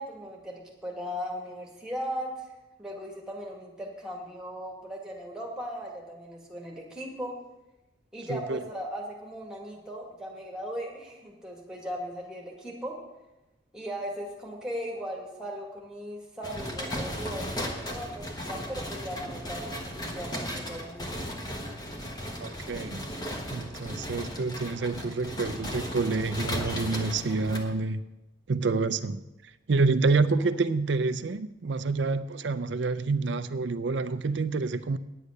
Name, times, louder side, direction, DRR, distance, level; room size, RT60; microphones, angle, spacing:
voice 1, 0.0-2.5 2.8-7.4 8.1-13.0 13.7-21.1 30.3-30.6, equal, 5° right, 1.9 m, -38 dB
sound 1, 16.4-27.6, equal, 20° left, 1.2 m, -36 dB
voice 2, 22.4-23.0 23.5-28.0 28.5-29.2 29.7-35.0, right 3 dB, 65° right, 0.5 m, -28 dB
9.8 x 8.3 x 6.5 m
head